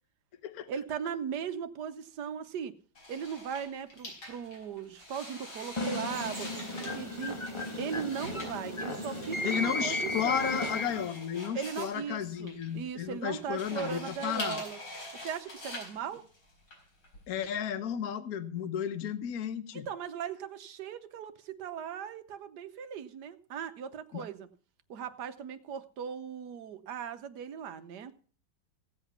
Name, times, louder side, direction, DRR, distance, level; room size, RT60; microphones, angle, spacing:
voice 1, 0.7-2.7 3.1-7.4 7.8-10.6 11.5-14.8 15.2-16.3 19.7-24.5 24.9-28.1, right 7 dB, 70° right, 11 dB, 1.4 m, -38 dB
sound 1, 2.9-17.5, left 1 dB, 75° left, 5.0 m, -45 dB
sound 2, 5.8-11.2, left 2 dB, 20° left, 1.3 m, -35 dB
sound 3, 6.1-11.1, right 5 dB, 35° right, 1.2 m, -47 dB
voice 2, 9.4-14.6 17.3-19.9 24.1-24.3, left 9 dB, 60° left, 11 dB, 1.3 m, -33 dB
16.0 x 8.0 x 5.7 m, 0.41 s
omnidirectional pair, 1.9 m